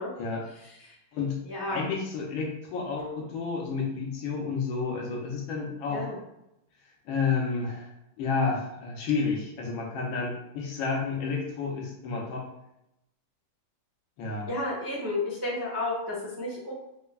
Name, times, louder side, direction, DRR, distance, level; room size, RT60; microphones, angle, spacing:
voice 1, 0.5-0.9 1.4-1.8 5.9-6.2 14.5-16.7, left 2 dB, 20° right, -7 dB, 0.6 m, -32 dB
voice 2, 1.7-6.1 7.1-7.9 8.2-12.5 14.2-14.5, left 4 dB, 70° left, -1 dB, 1.4 m, -30 dB
5.4 x 2.1 x 2.3 m, 0.85 s
omnidirectional pair, 2.4 m